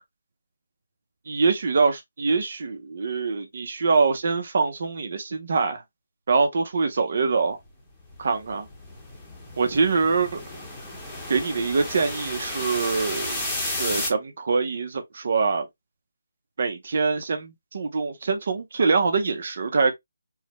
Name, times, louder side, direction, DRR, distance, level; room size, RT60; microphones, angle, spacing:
voice 1, 1.3-5.8 6.3-7.6 8.2-8.7 9.6-10.4 11.3-13.4 13.8-15.7 16.6-19.9, right 4 dB, 45° right, 0.7 m, -24 dB
sound 1, 8.1-14.1, left 1 dB, 5° left, 0.9 m, -33 dB
4.7 x 2.1 x 3.0 m
hypercardioid pair, 170°, 0 cm